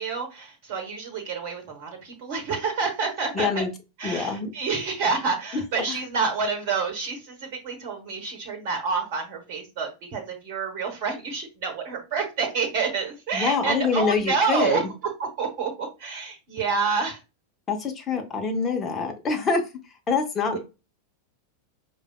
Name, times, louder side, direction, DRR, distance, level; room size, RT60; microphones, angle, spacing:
voice 1, 0.0-3.6 4.0-14.8 15.2-17.2 20.5-20.6, right 5 dB, 45° right, 1.0 m, -28 dB
voice 2, 3.3-3.7 4.0-4.5 5.9-6.0 13.3-14.8 17.7-19.6 20.1-20.6, left 5 dB, 20° left, 0.7 m, -25 dB
4.8 x 2.3 x 2.2 m
figure-of-eight pair, 90°, 0 cm